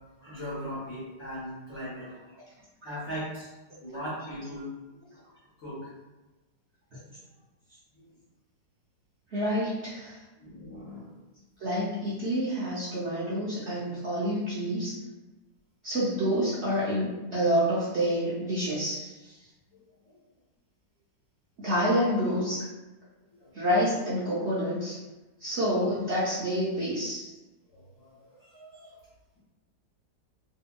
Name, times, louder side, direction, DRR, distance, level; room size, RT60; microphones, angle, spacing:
voice 1, 0.2-2.2 2.8-3.5 3.8-4.7 5.6-5.9 8.0-8.1 10.4-11.2 23.4-23.5 27.8-28.1 28.4-29.0, equal, 55° left, -10 dB, 1.0 m, -39 dB
voice 2, 9.3-10.2 11.6-15.0 15.8-19.4 21.6-22.6 23.5-25.0 25.4-27.3, equal, 75° right, -9 dB, 0.6 m, -28 dB
2.7 x 2.6 x 2.2 m, 1.1 s
omnidirectional pair, 1.9 m